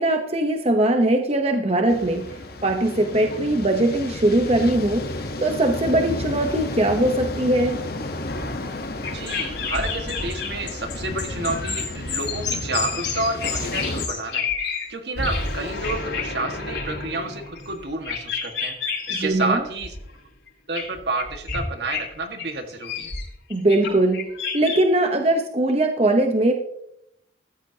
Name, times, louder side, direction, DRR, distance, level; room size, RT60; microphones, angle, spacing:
voice 1, 0.0-5.0 5.4-7.8 19.1-19.6 23.5-26.5, right 1 dB, 35° right, 4 dB, 1.0 m, -21 dB
sound 1, 1.9-14.1, left 2 dB, 55° left, 1.2 m, -32 dB
sound 2, 8.3-14.9 15.2-19.5 19.8-20.1 20.7-21.6 21.9-22.1 22.4-24.8, left 5 dB, 90° left, 5.7 m, -30 dB
voice 2, 9.1-18.8 19.1-19.9 20.7-23.1, right 2 dB, 65° right, 5 dB, 1.8 m, -30 dB
14.5 x 13.5 x 2.9 m, 0.76 s
head